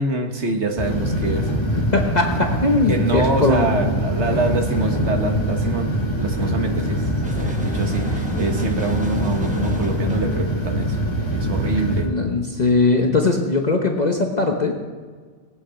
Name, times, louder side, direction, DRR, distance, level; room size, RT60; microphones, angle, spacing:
voice 1, 0.0-1.5 2.9-7.0 7.4-11.0 11.3-12.1, right 3 dB, 70° right, 4 dB, 1.8 m, -25 dB
sound 1, 0.8-12.0, equal, 25° left, 2.1 m, -23 dB
voice 2, 1.8-4.0 11.7-14.7, left 3 dB, 40° left, 2 dB, 1.1 m, -20 dB
sound 2, 7.2-10.4, equal, 5° right, 1.2 m, -35 dB
19.5 x 8.6 x 5.9 m, 1.5 s
omnidirectional pair, 1.2 m